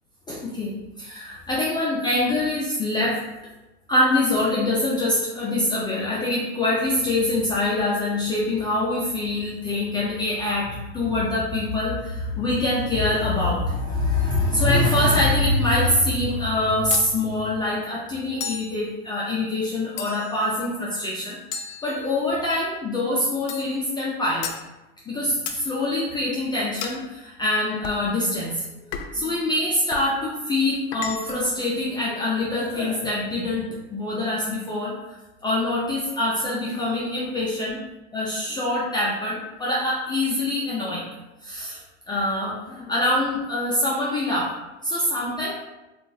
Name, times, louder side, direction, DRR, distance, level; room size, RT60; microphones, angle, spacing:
voice 1, 0.3-3.2 3.9-21.4 21.8-24.5 25.1-34.9 35.4-37.8 38.1-41.1 41.4-41.8 42.1-44.5 44.8-45.5, left 2 dB, 15° left, -7 dB, 0.4 m, -24 dB
sound 1, 16.9-17.2 18.4-18.8 20.0-20.4 21.5-22.4 23.5-23.8 24.4-24.7 25.5-25.7 26.8-27.1 27.8-28.1 28.9-29.3 29.9-30.1 30.9-31.5, left 7 dB, 70° left, 0.5 m, -33 dB
2.5 x 2.4 x 3.9 m, 1.0 s
supercardioid pair, 125°, 34 cm